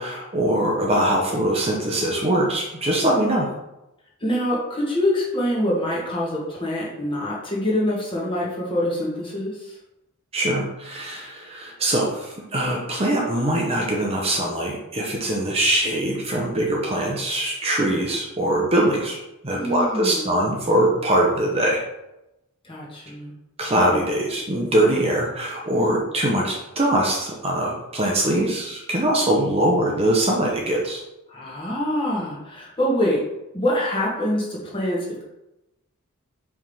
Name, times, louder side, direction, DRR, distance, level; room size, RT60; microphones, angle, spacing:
voice 1, 0.0-3.5 10.3-19.2 19.4-21.8 23.6-31.0, right 1 dB, 25° right, -1 dB, 0.8 m, -22 dB
voice 2, 4.2-9.8 19.5-20.4 22.6-23.3 31.3-33.2 33.5-35.2, left 1 dB, 25° left, -5 dB, 1.8 m, -25 dB
5.2 x 3.6 x 5.5 m, 0.92 s
head